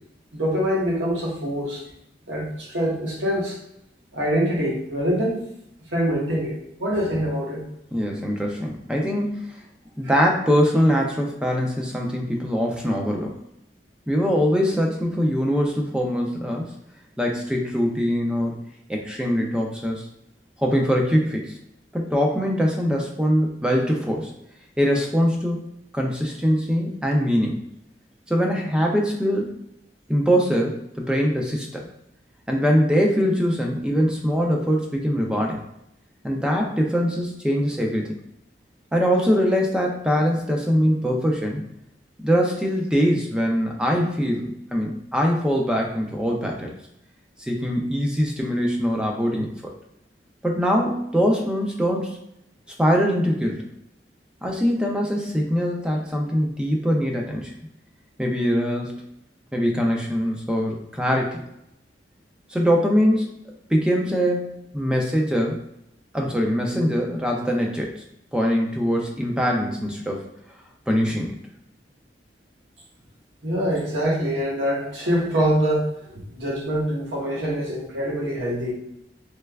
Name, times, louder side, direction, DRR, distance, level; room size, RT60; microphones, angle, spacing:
voice 1, 0.3-1.8 2.3-3.6 4.1-5.4 5.9-7.6 73.4-78.7, equal, 90° right, -4 dB, 1.2 m, -24 dB
voice 2, 7.9-9.6 10.0-13.4 14.1-16.7 17.2-18.6 18.9-20.1 20.6-21.6 21.9-24.3 24.8-25.7 25.9-27.6 28.3-29.6 30.1-31.9 32.5-35.6 36.2-38.2 38.9-41.6 42.2-46.7 47.4-49.7 50.4-52.2 52.8-53.6 54.4-57.5 58.2-59.0 59.5-61.4 62.5-63.4 63.7-65.6 66.1-68.0 68.3-70.3 70.9-71.4, equal, 5° right, 0 dB, 0.4 m, -22 dB
3.2 x 3.2 x 2.3 m, 0.78 s
head